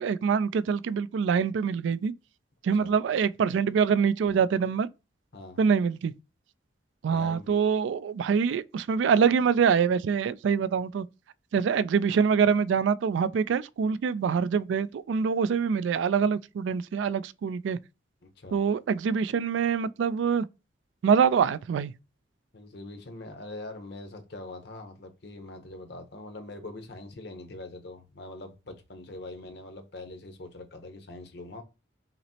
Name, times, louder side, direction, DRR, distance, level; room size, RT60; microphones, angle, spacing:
voice 1, 0.0-2.1 2.6-4.9 5.6-6.1 7.0-11.1 11.5-17.8 18.5-20.5 21.0-21.9, right 6 dB, 80° right, 0.3 m, -25 dB
voice 2, 7.1-7.5 18.2-18.6 22.5-31.6, left 2 dB, 60° left, 0.8 m, -43 dB
5.8 x 2.0 x 2.7 m
head